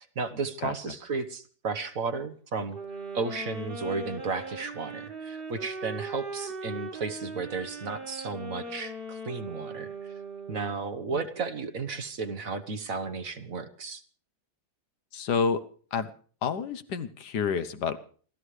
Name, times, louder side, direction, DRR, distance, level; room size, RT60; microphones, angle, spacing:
voice 1, 0.0-2.8 3.1-10.1 10.5-14.0, right 4 dB, 55° right, 10 dB, 1.4 m, -34 dB
sound 1, 2.7-10.9, right 2 dB, 30° right, 1.8 m, -39 dB
voice 2, 15.1-15.6 15.9-16.1 16.4-18.0, left 6 dB, 70° left, 10 dB, 1.5 m, -29 dB
28.5 x 13.0 x 3.3 m, 0.43 s
omnidirectional pair, 1.9 m